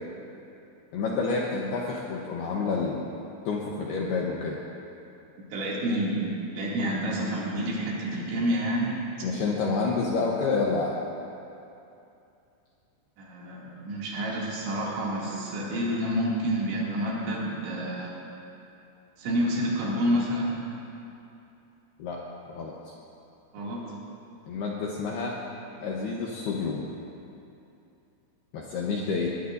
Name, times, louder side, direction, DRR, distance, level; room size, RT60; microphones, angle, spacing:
voice 1, 0.9-3.0 3.5-4.6 9.2-11.0 22.0-22.2 22.5-22.7 24.5-25.4 25.8-26.9 28.5-29.3, left 4 dB, 75° left, -2 dB, 2.4 m, -28 dB
voice 2, 5.5-6.2 6.5-8.9 13.2-18.1 19.2-20.5 23.5-23.8, equal, 70° right, -5 dB, 4.7 m, -28 dB
21.0 x 19.0 x 2.6 m, 2.7 s
omnidirectional pair, 5.8 m